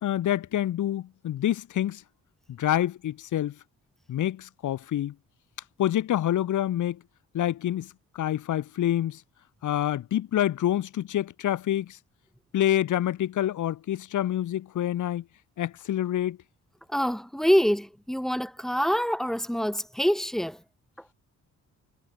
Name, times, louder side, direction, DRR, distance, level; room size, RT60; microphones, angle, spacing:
voice 1, 0.0-2.0 2.5-3.6 4.1-5.1 5.8-7.0 7.3-9.2 9.6-12.0 12.5-15.2 15.6-16.4, left 12 dB, 75° left, 3.5 m, -27 dB
voice 2, 16.9-20.6, equal, ahead, 4.4 m, -25 dB
cardioid pair, 95°, 31 cm